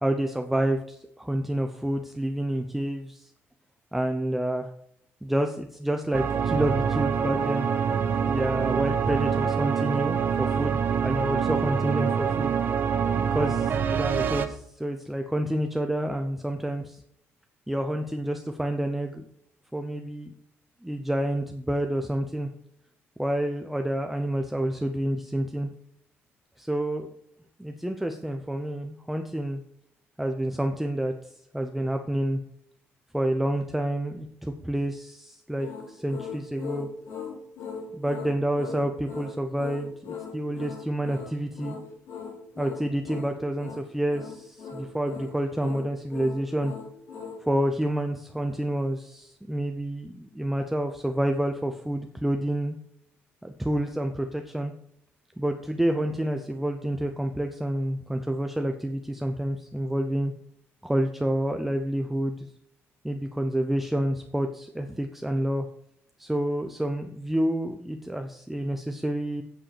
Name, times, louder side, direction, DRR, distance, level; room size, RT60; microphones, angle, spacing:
voice 1, 0.0-3.3 3.9-4.7 5.2-7.7 8.3-12.5 13.2-17.0 17.7-19.2 19.7-20.3 20.8-22.5 23.2-25.7 26.6-27.1 27.6-29.6 30.2-31.1 31.5-32.4 33.1-36.9 37.9-41.8 42.6-46.7 47.5-52.8 53.4-54.7 55.4-60.3 60.8-62.5 63.0-65.7 66.2-69.4, right 1 dB, 5° right, 5 dB, 0.7 m, -28 dB
sound 1, 6.1-14.5, right 7 dB, 45° right, 1.0 m, -25 dB
sound 2, 35.6-47.4, left 5 dB, 70° left, 3.7 m, -39 dB
8.9 x 7.7 x 6.9 m, 0.73 s
cardioid pair, 150°, 5 cm